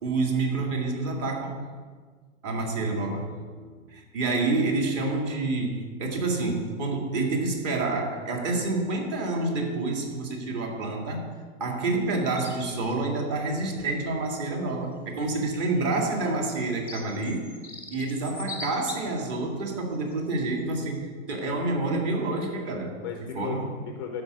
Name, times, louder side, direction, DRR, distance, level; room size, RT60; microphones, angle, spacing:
voice 1, 0.0-1.7 2.4-3.4 3.9-17.5 17.9-23.7, right 3 dB, 40° right, 1 dB, 2.3 m, -28 dB
voice 2, 2.8-3.9 23.0-24.2, left 7 dB, 20° left, 4 dB, 0.4 m, -38 dB
sound 1, 12.4-12.8 14.3-14.4 15.5-19.3 19.9-20.1 20.8-21.0, left 2 dB, 5° right, 0.9 m, -41 dB
12.0 x 5.2 x 6.7 m, 1.5 s
hypercardioid pair, 145°, 41 cm